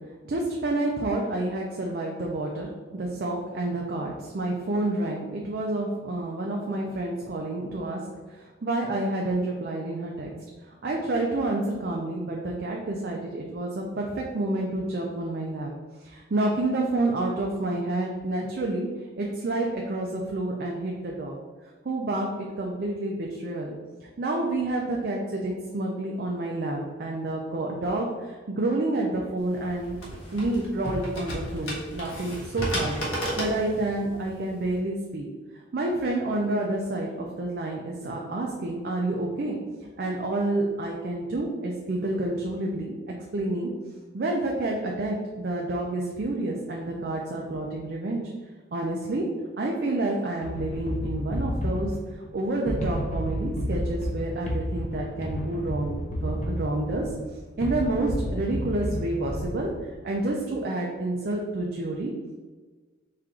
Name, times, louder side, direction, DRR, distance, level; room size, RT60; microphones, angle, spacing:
voice 1, 0.1-8.0 8.3-10.3 10.6-15.7 16.0-18.9 19.2-21.4 21.8-23.7 24.0-30.0 30.3-35.2 35.5-39.6 40.0-43.0 43.3-43.7 44.1-48.2 48.7-49.3 49.6-56.0 56.2-57.1 57.6-62.1, right 2 dB, 50° right, -1 dB, 0.4 m, -29 dB
sound 1, 29.4-34.8, equal, 90° left, 1.2 m, -34 dB
sound 2, 50.4-60.0, equal, 40° left, 0.6 m, -31 dB
4.4 x 2.5 x 3.6 m, 1.4 s
head